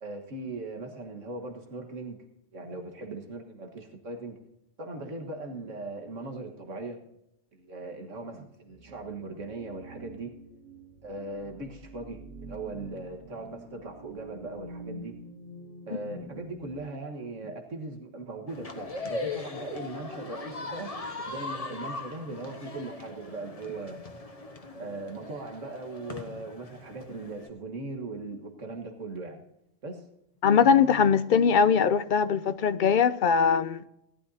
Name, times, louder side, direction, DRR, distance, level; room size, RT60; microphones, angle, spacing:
voice 1, 0.0-2.2 2.5-4.4 4.8-7.0 7.5-10.4 11.0-15.1 15.9-20.9 21.3-24.0 24.8-29.4 29.8-30.0, right 2 dB, 90° right, 1.9 m, -39 dB
sound 1, 8.7-16.8, right 1 dB, 10° left, 4.0 m, -46 dB
sound 2, 18.5-27.5, left 3 dB, 30° left, 1.2 m, -39 dB
voice 2, 30.4-33.8, left 6 dB, 55° left, 0.6 m, -21 dB
18.0 x 12.0 x 2.8 m
omnidirectional pair, 1.3 m